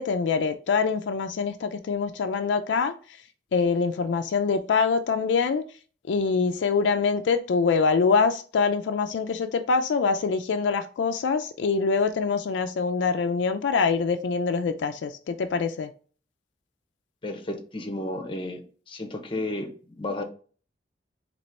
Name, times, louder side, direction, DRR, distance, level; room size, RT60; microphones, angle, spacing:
voice 1, 0.0-2.9 3.5-5.6 6.1-15.9, left 5 dB, 80° left, 8 dB, 0.3 m, -24 dB
voice 2, 17.2-18.6 18.9-20.2, left 1 dB, 30° left, 4 dB, 0.7 m, -32 dB
4.1 x 2.9 x 3.2 m, 0.40 s
head